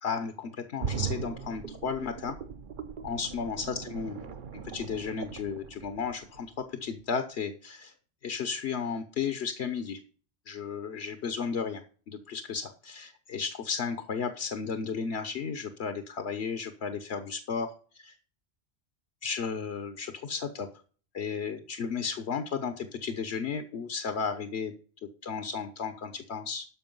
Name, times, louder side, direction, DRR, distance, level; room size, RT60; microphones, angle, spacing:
voice 1, 0.0-2.4 3.0-4.3 4.6-7.9 8.2-10.0 10.5-18.1 19.2-20.7 21.1-24.7 25.2-26.7, left 6 dB, 80° left, 8 dB, 1.2 m, -34 dB
sound 1, 0.8-6.6 7.0-7.1, right 7 dB, 55° right, 0.8 m, -39 dB
13.0 x 5.3 x 5.4 m, 0.40 s
omnidirectional pair, 1.1 m